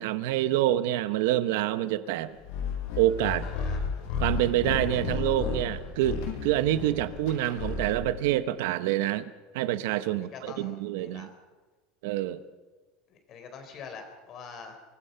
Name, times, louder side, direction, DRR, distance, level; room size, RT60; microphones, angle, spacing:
voice 1, 0.0-2.3 3.0-3.5 4.2-11.3 12.0-12.4, right 13 dB, 75° right, 13 dB, 0.9 m, -27 dB
sound 1, 2.4-8.2, left 5 dB, 70° left, 6.2 m, -33 dB
voice 2, 3.4-3.8 10.1-11.3 13.1-14.8, left 6 dB, 35° left, 6 dB, 4.1 m, -45 dB
24.5 x 20.5 x 5.7 m, 1.3 s
cardioid pair, 165°, 0 cm